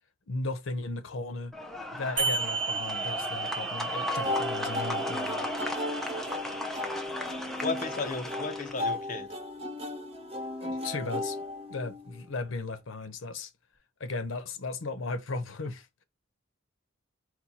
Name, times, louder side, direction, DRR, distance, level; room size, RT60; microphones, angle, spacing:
voice 1, 0.3-1.5 1.9-5.5 10.6-11.4 11.7-13.5 14.0-15.9, left 3 dB, 80° left, 0.7 m, -36 dB
sound 1, 1.5-8.9, left 1 dB, ahead, 0.5 m, -36 dB
sound 2, 2.2-7.2, right 5 dB, 60° right, 0.9 m, -35 dB
sound 3, 4.2-12.2, left 1 dB, 30° right, 0.9 m, -35 dB
voice 2, 7.6-9.3, left 3 dB, 40° left, 0.7 m, -34 dB
4.3 x 2.3 x 4.1 m
head